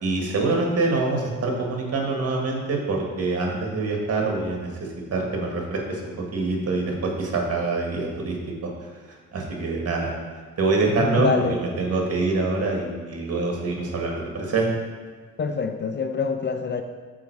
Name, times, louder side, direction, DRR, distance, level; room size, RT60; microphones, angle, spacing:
voice 1, 0.0-8.4 8.6-8.7 9.3-10.1 10.6-14.7, right 3 dB, 55° right, 0 dB, 1.7 m, -25 dB
voice 2, 11.0-11.6 15.4-16.8, left 5 dB, 35° left, 7 dB, 0.5 m, -25 dB
7.2 x 4.6 x 4.6 m, 1.5 s
cardioid pair, 90°, 30 cm